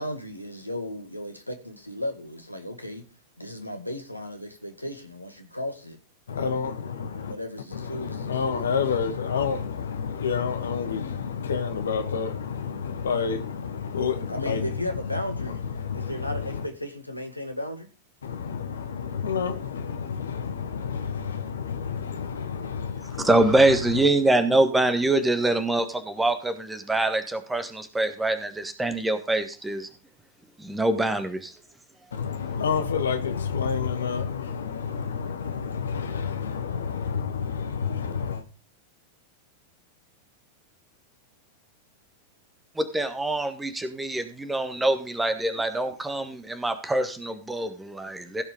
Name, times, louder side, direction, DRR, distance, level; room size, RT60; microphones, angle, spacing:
voice 1, 0.0-3.0 3.4-6.0 7.3-8.7 14.3-15.6 15.9-17.9, left 1 dB, 85° left, 1.7 m, -35 dB
voice 2, 6.3-7.3 7.7-16.7 18.2-24.0 32.1-38.4, left 6 dB, 65° left, 1.4 m, -29 dB
voice 3, 23.2-29.9 30.6-31.5 42.8-48.4, right 2 dB, 10° right, 1.5 m, -24 dB
16.0 x 5.4 x 5.1 m
figure-of-eight pair, 90°, 0 cm